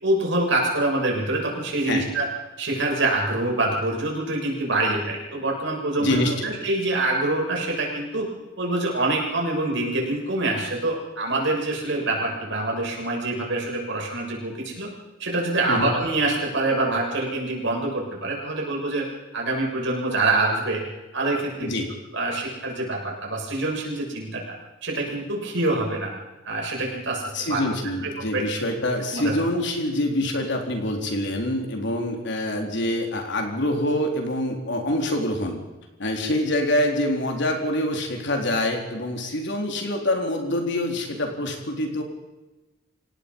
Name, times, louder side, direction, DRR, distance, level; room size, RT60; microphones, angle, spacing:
voice 1, 0.0-2.3 2.6-8.3 8.6-14.9 15.2-19.1 19.3-20.8 21.1-21.8 22.1-24.6 24.8-26.1 26.4-27.6 28.0-28.4 29.1-29.3, right 2 dB, 65° right, -1 dB, 7.0 m, -25 dB
voice 2, 6.0-6.5 15.7-15.9 21.6-21.9 27.3-35.6 36.0-42.0, left 1 dB, 65° left, 2 dB, 3.9 m, -25 dB
27.0 x 18.0 x 5.5 m, 1.1 s
head